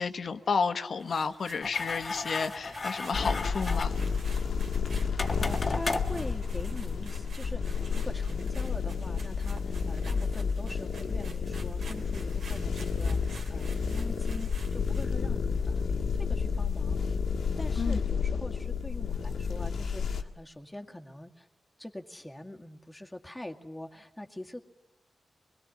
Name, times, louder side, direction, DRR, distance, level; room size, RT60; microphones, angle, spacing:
voice 1, 0.0-3.9 17.8-18.0, left 5 dB, 65° left, 9 dB, 1.4 m, -31 dB
sound 1, 1.0-15.2, right 4 dB, 75° right, 3.0 m, -51 dB
sound 2, 1.6-7.2, left 3 dB, 40° left, 1.6 m, -36 dB
sound 3, 3.1-20.2, left 5 dB, 85° left, 1.8 m, -31 dB
voice 2, 4.9-21.5 21.8-24.6, left 1 dB, 10° left, 3 dB, 2.1 m, -43 dB
24.0 x 21.0 x 8.5 m, 0.96 s
cardioid pair, 85°, 0 cm